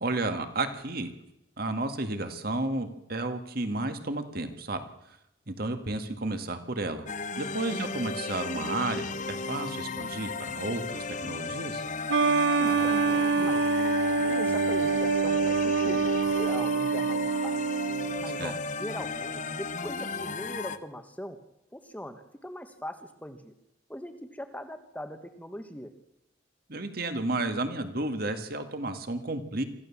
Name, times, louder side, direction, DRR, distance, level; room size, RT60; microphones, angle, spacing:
voice 1, 0.0-1.1 1.6-5.2 5.5-7.1 7.4-11.8 18.4-18.5 26.7-29.6, right 2 dB, 50° right, 8 dB, 1.9 m, -32 dB
sound 1, 7.1-20.8, left 4 dB, 40° left, 0.9 m, -35 dB
sound 2, 12.1-18.4, right 4 dB, 65° right, 0.8 m, -26 dB
voice 2, 12.6-13.9 14.2-16.1 16.4-17.5 18.2-21.4 21.7-23.5 23.9-25.9, equal, 10° left, 8 dB, 1.3 m, -41 dB
25.0 x 15.0 x 7.3 m, 0.85 s
head